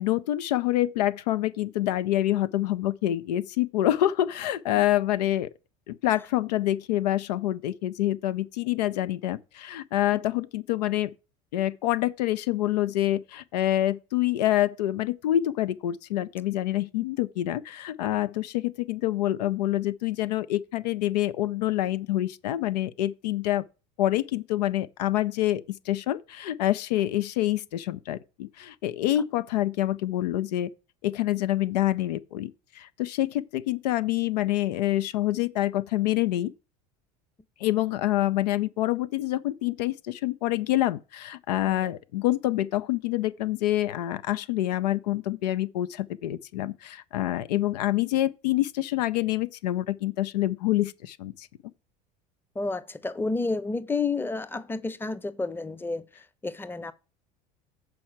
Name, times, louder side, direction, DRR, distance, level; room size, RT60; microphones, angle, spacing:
voice 1, 0.0-5.5 5.9-11.1 11.5-23.6 24.0-30.7 31.0-36.5 37.6-51.5, left 14 dB, 75° left, 0.5 m, -26 dB
voice 2, 52.5-56.1 56.4-56.9, left 3 dB, 10° left, 0.7 m, -30 dB
7.7 x 4.6 x 7.2 m
hypercardioid pair, 80°, 21 cm